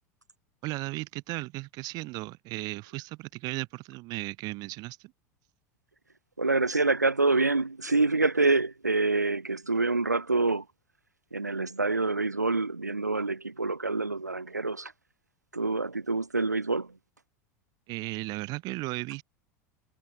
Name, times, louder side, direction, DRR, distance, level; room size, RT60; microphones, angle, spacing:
voice 1, 0.6-5.1 17.9-19.2, right 22 dB, 50° right, 4.3 m, -35 dB
voice 2, 6.4-10.6 11.3-14.9 15.5-16.9, right 3 dB, 90° right, 5.1 m, -26 dB
figure-of-eight pair, 80°, 9 cm